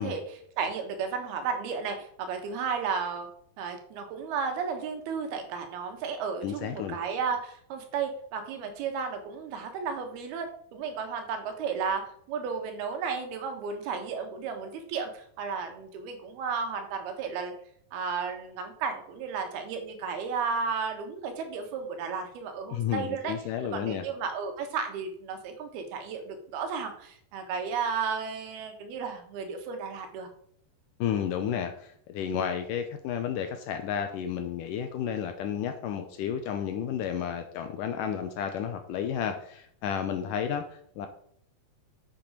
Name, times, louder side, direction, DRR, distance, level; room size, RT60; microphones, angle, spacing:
voice 1, 0.0-3.3 3.6-17.5 17.9-23.3 23.7-30.3, right 5 dB, 85° right, 5 dB, 3.3 m, -33 dB
voice 2, 6.4-7.0 22.7-24.0 31.0-41.1, left 8 dB, 75° left, 7 dB, 2.1 m, -32 dB
7.7 x 7.4 x 5.0 m, 0.63 s
omnidirectional pair, 4.4 m